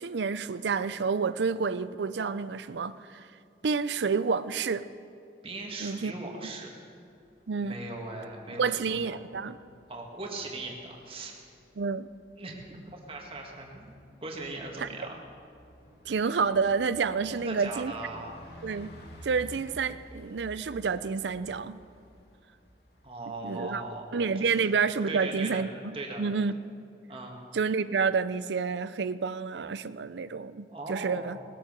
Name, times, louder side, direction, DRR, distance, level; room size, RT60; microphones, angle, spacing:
voice 1, 0.0-3.2 3.6-4.8 5.8-6.1 7.5-7.8 8.6-9.6 11.8-12.1 14.8-14.9 16.1-17.9 18.6-18.9 19.2-21.8 23.4-23.8 24.1-25.7 26.2-26.5 27.5-31.4, right 5 dB, 85° right, 14 dB, 0.5 m, -29 dB
voice 2, 5.4-6.7 7.6-9.2 9.9-11.3 12.4-15.2 17.3-18.4 23.0-24.1 24.4-24.6 25.1-25.7 25.9-26.3 27.1-27.4 30.7-31.5, right 2 dB, 30° right, 0 dB, 2.0 m, -39 dB
Bus, 7.0-24.0, left 1 dB, 70° left, 2.0 m, -53 dB
20.0 x 8.6 x 6.8 m, 2.5 s
head